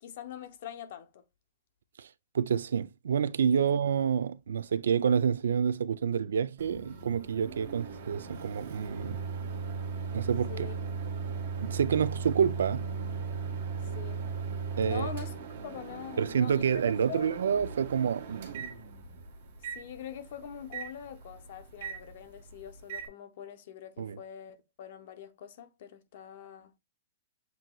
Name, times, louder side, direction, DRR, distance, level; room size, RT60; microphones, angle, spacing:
voice 1, 0.0-1.2 3.6-3.7 10.5-10.7 13.9-14.2 14.8-15.4 15.6-17.4 19.7-26.7, left 9 dB, 50° left, 0.7 m, -44 dB
voice 2, 2.3-9.2 10.1-10.7 11.6-12.9 14.8-15.1 16.2-18.7 24.0-24.2, right 7 dB, 90° right, 0.3 m, -28 dB
Microwave oven, 6.6-23.1, right 5 dB, 55° right, 1.2 m, -38 dB
7.6 x 2.7 x 2.2 m
hypercardioid pair, 170°, 0 cm